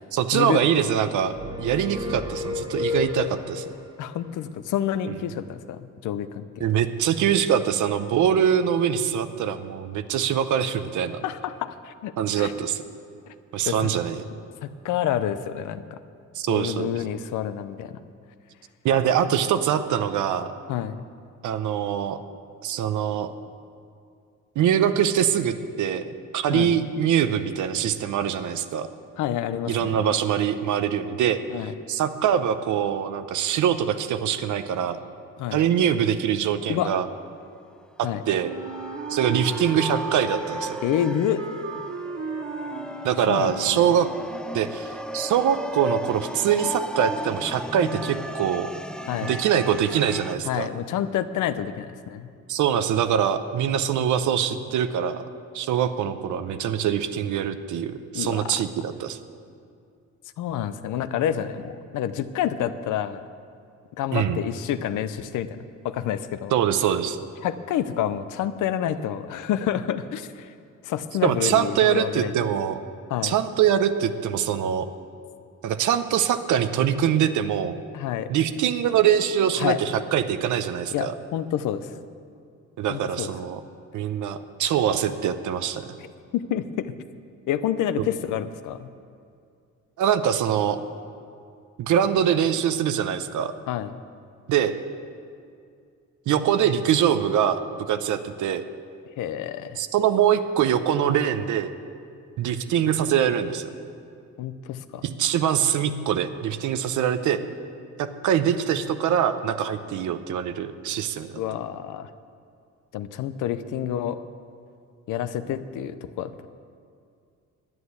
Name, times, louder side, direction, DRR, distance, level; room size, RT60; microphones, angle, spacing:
voice 1, 0.1-3.6 5.1-5.2 6.6-11.2 12.2-12.8 13.5-14.2 16.3-16.9 18.8-20.5 21.4-22.2 22.6-23.3 24.6-28.9 29.6-31.4 31.9-35.0 35.5-37.1 38.0-38.5 39.1-40.8 43.0-44.1 44.5-48.7 49.2-50.7 52.5-55.2 55.5-59.2 64.1-64.4 66.5-67.2 71.2-72.8 73.2-74.9 75.6-77.8 78.3-81.1 82.8-83.6 83.9-85.9 90.0-90.8 91.8-93.5 94.5-94.7 96.3-97.6 97.9-98.6 99.8-101.7 102.4-103.7 105.0-107.4 108.0-111.4, right 9 dB, 75° right, 10 dB, 0.8 m, -23 dB
sound 1, 1.3-3.8, left 4 dB, 15° right, 1.1 m, -31 dB
voice 2, 4.0-6.6 11.2-12.5 13.3-13.4 13.7-13.9 14.6-16.0 16.5-18.0 20.7-21.0 26.5-26.7 29.2-30.1 31.5-31.7 35.4-35.6 36.7-36.9 38.0-38.2 40.8-41.4 43.3-43.9 49.1-49.3 50.5-52.3 58.1-58.6 60.4-63.2 64.0-65.6 65.8-66.5 67.4-70.5 70.8-72.3 73.1-73.3 77.9-78.3 79.6-79.8 80.9-81.9 82.9-83.3 86.3-86.9 87.5-88.9 93.7-93.9 99.2-99.8 104.4-105.0 111.4-112.1 112.9-114.2 115.1-116.5, left 10 dB, 80° left, 12 dB, 0.7 m, -28 dB
sound 2, 38.1-50.4, equal, 5° left, 0.3 m, -35 dB
Wind instrument woodwind instrument, 38.4-44.2, right 3 dB, 55° right, 2.0 m, -35 dB
11.0 x 9.5 x 8.2 m, 2.3 s
cardioid pair, 90°, 30 cm